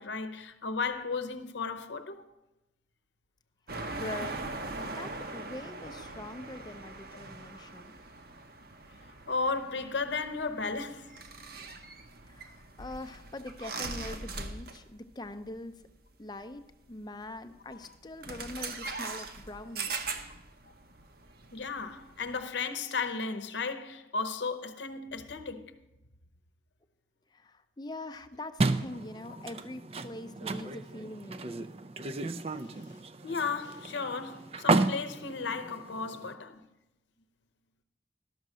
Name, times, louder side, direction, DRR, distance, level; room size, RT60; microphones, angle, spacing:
voice 1, 0.0-2.3 9.3-11.2 21.5-25.8 33.2-36.6, left 4 dB, 75° left, 0.8 m, -34 dB
sound 1, 3.7-15.0 15.2-15.5 16.6-16.7 17.7-17.9 18.2-22.4, right 3 dB, 55° right, 0.9 m, -41 dB
voice 2, 3.9-4.4 4.8-7.9 12.2-15.7 16.2-16.6 16.9-20.1 27.3-31.7, left 1 dB, 20° left, 0.5 m, -43 dB
sound 2, 28.6-36.3, right 3 dB, 30° right, 0.4 m, -33 dB
12.0 x 6.6 x 6.1 m
head